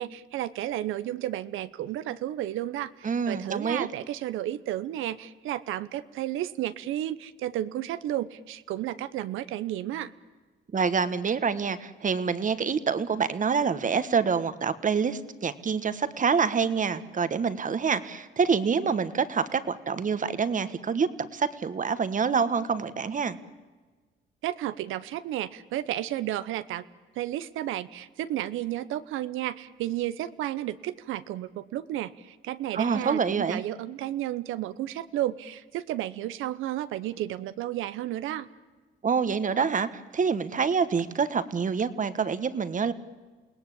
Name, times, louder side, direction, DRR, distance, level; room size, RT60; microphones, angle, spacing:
voice 1, 0.0-10.1 24.4-26.8 27.2-38.5, right 13 dB, 90° right, 13 dB, 0.9 m, -32 dB
voice 2, 3.0-3.9 10.7-23.4 32.7-33.6 39.0-42.9, right 6 dB, 40° right, 13 dB, 1.5 m, -26 dB
28.5 x 18.0 x 8.6 m, 1.3 s
cardioid pair, 90°, 20 cm